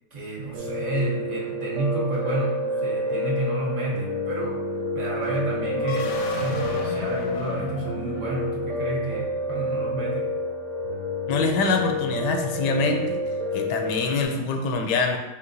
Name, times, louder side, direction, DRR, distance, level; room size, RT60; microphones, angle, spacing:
voice 1, 0.1-4.6 4.9-10.3, right 2 dB, 65° right, -5 dB, 0.4 m, -30 dB
Piano, 0.5-14.3, left 1 dB, 85° right, 1.5 m, -29 dB
sound 1, 5.7-8.7, left 4 dB, 70° left, 0.9 m, -35 dB
voice 2, 11.3-13.2 13.5-15.2, left 4 dB, 85° left, 4 dB, 1.2 m, -24 dB
4.7 x 3.3 x 2.6 m, 1.0 s
omnidirectional pair, 1.8 m